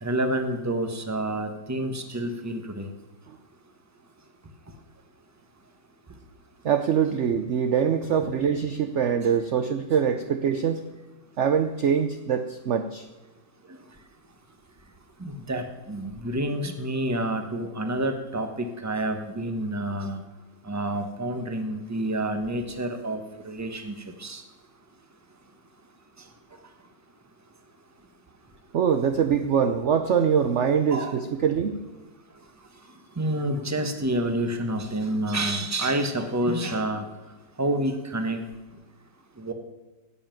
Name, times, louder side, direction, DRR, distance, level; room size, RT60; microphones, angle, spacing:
voice 1, 0.0-2.9 15.2-20.2 20.6-24.4 30.9-31.1 33.2-37.0 37.6-38.4 39.4-39.5, right 1 dB, 10° right, 6 dB, 1.0 m, -28 dB
voice 2, 6.6-10.8 11.4-13.1 28.7-31.8, right 7 dB, 55° right, 9 dB, 0.8 m, -24 dB
16.5 x 7.1 x 9.1 m, 1.1 s
omnidirectional pair, 1.8 m